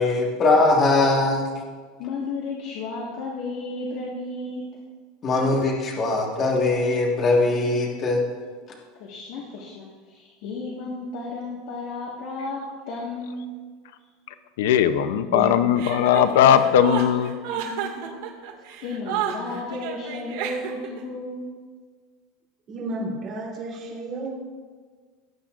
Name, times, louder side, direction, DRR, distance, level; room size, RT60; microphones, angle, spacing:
voice 1, 0.0-1.5 5.2-8.3, left 2 dB, 25° left, -1 dB, 1.6 m, -21 dB
voice 2, 2.0-4.7 9.0-13.5 17.2-17.3 18.8-21.5, left 3 dB, 55° left, -4 dB, 1.5 m, -33 dB
voice 3, 14.6-17.3, left 9 dB, 85° left, 10 dB, 0.6 m, -18 dB
voice 4, 15.3-16.7 17.1-17.2 17.5-18.2 19.5-19.6 22.7-24.3, right 2 dB, 30° right, -5 dB, 3.4 m, -34 dB
Chuckle chortle, 15.8-21.0, right 9 dB, 85° right, 1.9 m, -31 dB
18.0 x 8.6 x 2.5 m, 1.5 s
supercardioid pair, 170°, 0 cm